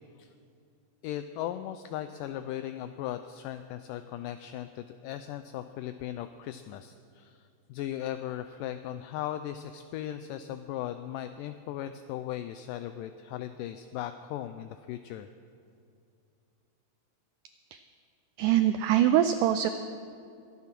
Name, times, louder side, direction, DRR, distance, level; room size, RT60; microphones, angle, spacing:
voice 1, 1.0-15.3, left 12 dB, 85° left, 10 dB, 1.9 m, -38 dB
voice 2, 18.4-19.7, right 11 dB, 85° right, 10 dB, 1.8 m, -23 dB
23.0 x 9.5 x 6.0 m, 2.5 s
omnidirectional pair, 4.2 m